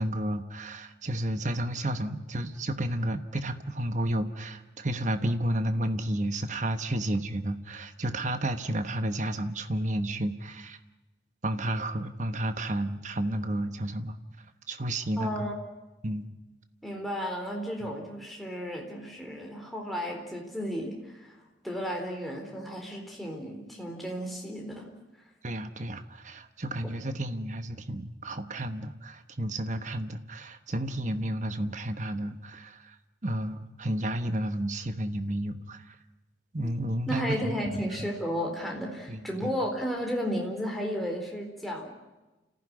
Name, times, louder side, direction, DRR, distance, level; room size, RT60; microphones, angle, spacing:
voice 1, 0.0-10.8 11.4-14.2 14.7-15.5 16.0-16.2 25.4-33.0 33.2-35.9 36.5-37.8 39.1-39.5, right 1 dB, 40° right, 9 dB, 1.2 m, -31 dB
voice 2, 15.2-15.6 16.8-24.9 36.6-36.7 37.1-41.9, equal, ahead, 0 dB, 4.2 m, -33 dB
29.5 x 15.5 x 9.8 m, 1.1 s
head